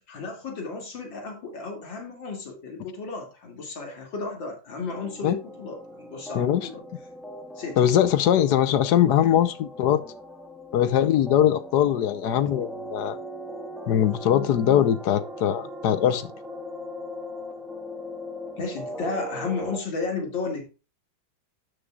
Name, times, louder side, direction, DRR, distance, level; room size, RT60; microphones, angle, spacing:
voice 1, 0.1-6.8 7.5-7.9 18.6-20.7, left 4 dB, 80° left, 3.2 m, -33 dB
sound 1, 4.9-19.8, equal, ahead, 1.4 m, -39 dB
voice 2, 6.3-6.7 7.8-10.0 10.7-13.2 13.9-16.3, left 10 dB, 65° left, 1.3 m, -21 dB
12.0 x 6.8 x 2.4 m
omnidirectional pair, 2.0 m